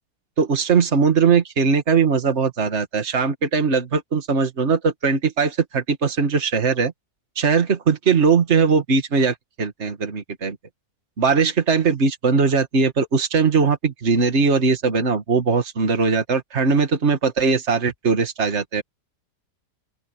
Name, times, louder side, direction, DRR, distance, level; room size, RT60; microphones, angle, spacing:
voice 1, 0.4-6.9 7.4-10.6 11.2-18.8, right 5 dB, 40° right, 2.1 m, -20 dB
open air
omnidirectional pair, 1.8 m